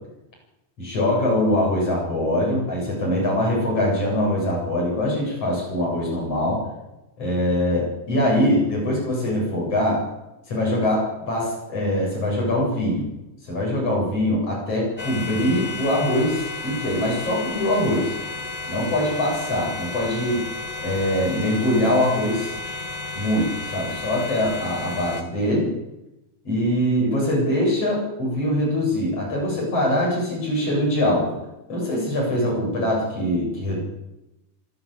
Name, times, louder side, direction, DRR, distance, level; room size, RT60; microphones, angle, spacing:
voice 1, 0.8-6.6 7.2-10.1 10.5-13.1 13.4-18.1 18.7-20.4 20.8-22.5 23.1-25.7 26.5-31.4 31.7-33.8, left 1 dB, 45° left, -2 dB, 9.2 m, -23 dB
sound 1, 15.0-25.2, left 3 dB, 20° left, 1.2 m, -33 dB
26.0 x 12.5 x 8.4 m, 0.96 s
omnidirectional pair, 3.8 m